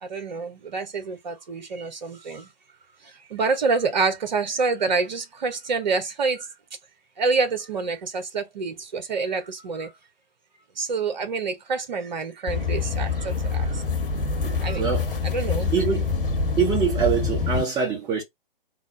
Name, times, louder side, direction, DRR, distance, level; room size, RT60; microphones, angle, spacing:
voice 1, 0.0-2.5 3.0-6.5 7.2-9.9 10.7-13.8 14.6-14.8 15.2-15.7, right 4 dB, 50° right, 1.2 m, -27 dB
sound 1, 12.5-17.6, left 5 dB, 65° left, 1.2 m, -26 dB
voice 2, 14.4-15.1 15.7-16.1 16.6-18.2, right 6 dB, 10° right, 0.9 m, -24 dB
3.7 x 2.2 x 3.8 m
figure-of-eight pair, 125°, 29 cm